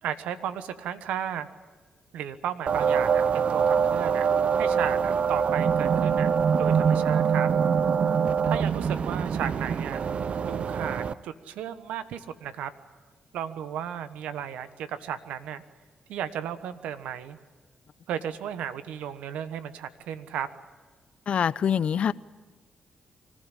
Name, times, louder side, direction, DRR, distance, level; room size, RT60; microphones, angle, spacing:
voice 1, 0.0-1.5 2.1-4.3 4.5-6.3 6.6-7.5 8.5-10.0 10.5-12.7 13.3-15.6 16.1-17.4 18.1-20.5, right 9 dB, 85° right, 11 dB, 1.2 m, -34 dB
sound 1, 2.7-11.1, right 6 dB, 60° right, 0.7 m, -24 dB
voice 2, 21.3-22.1, left 8 dB, 60° left, 18 dB, 0.7 m, -24 dB
25.0 x 15.5 x 10.0 m, 1.3 s
supercardioid pair, 55°, 2 cm